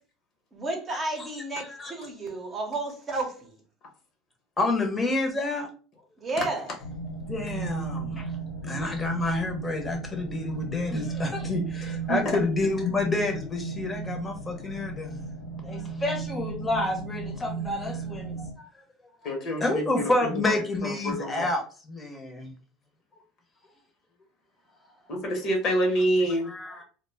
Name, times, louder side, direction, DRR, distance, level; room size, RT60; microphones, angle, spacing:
voice 1, 0.5-3.6 6.2-6.7, right 2 dB, 30° right, 2 dB, 0.8 m, -32 dB
voice 2, 4.6-5.7 7.3-8.2 8.6-15.2 15.6-18.5 19.6-22.5 26.4-26.8, left 2 dB, 20° left, 3 dB, 0.8 m, -29 dB
sound 1, 6.8-18.5, right 4 dB, 80° left, 0.9 m, -35 dB
voice 3, 19.2-19.8 20.2-21.5 25.1-26.5, right 1 dB, 55° left, 2 dB, 1.0 m, -27 dB
2.2 x 2.1 x 3.3 m, 0.39 s
supercardioid pair, 95°, 0 cm